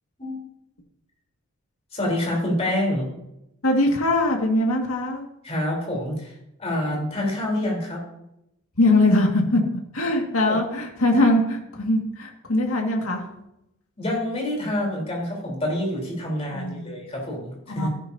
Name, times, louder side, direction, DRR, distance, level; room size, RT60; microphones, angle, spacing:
voice 1, 1.9-3.1 5.4-6.3 6.6-8.0 10.5-10.6 14.0-17.9, left 1 dB, 30° left, -1 dB, 3.7 m, -27 dB
voice 2, 3.6-5.2 8.8-9.6 9.9-13.3 16.5-16.9 17.7-17.9, left 1 dB, 75° left, 1 dB, 2.0 m, -21 dB
13.5 x 10.5 x 2.8 m, 0.82 s
head